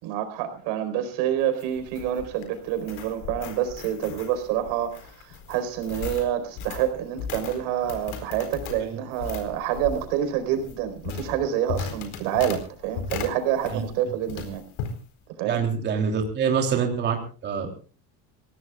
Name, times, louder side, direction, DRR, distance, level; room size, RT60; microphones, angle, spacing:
voice 1, 0.0-14.6 15.4-15.6, right 10 dB, 90° right, 9 dB, 4.4 m, -27 dB
sound 1, 1.4-14.0 14.3-15.0, left 6 dB, 65° left, 4.3 m, -37 dB
voice 2, 15.4-17.7, right 6 dB, 30° right, 3 dB, 3.1 m, -25 dB
28.0 x 17.0 x 2.4 m, 0.38 s
cardioid pair, 175°, 35 cm